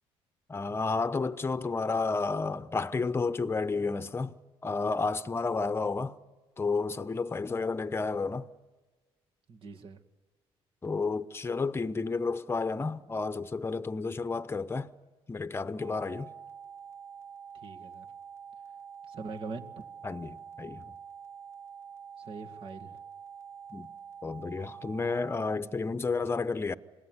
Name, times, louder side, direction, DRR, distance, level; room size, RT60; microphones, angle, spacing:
voice 1, 0.5-4.3 4.6-6.1 6.6-8.5 10.8-14.9 15.3-16.3 20.0-20.9 23.7-23.9 24.2-26.8, left 4 dB, 25° left, 0.9 m, -31 dB
voice 2, 9.5-10.0 17.5-18.1 19.1-19.8 22.2-23.0, right 4 dB, 60° right, 2.2 m, -42 dB
sound 1, 15.8-25.6, right 7 dB, 25° right, 1.7 m, -47 dB
27.0 x 19.5 x 9.7 m
cardioid pair, 85°, 11 cm